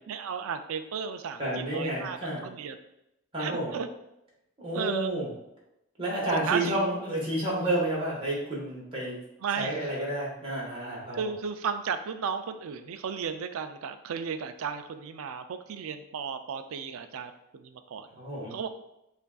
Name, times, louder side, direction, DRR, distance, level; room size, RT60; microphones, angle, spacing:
voice 1, 0.1-2.8 3.4-3.9 4.7-5.1 6.5-6.7 9.4-9.7 11.1-18.1 18.5-18.7, right 6 dB, 75° right, 8 dB, 0.4 m, -34 dB
voice 2, 1.4-2.4 3.3-3.7 4.6-5.3 6.0-9.2 9.5-11.3 18.2-18.6, right 1 dB, 25° right, -6 dB, 1.3 m, -30 dB
6.7 x 2.5 x 2.3 m, 0.86 s
head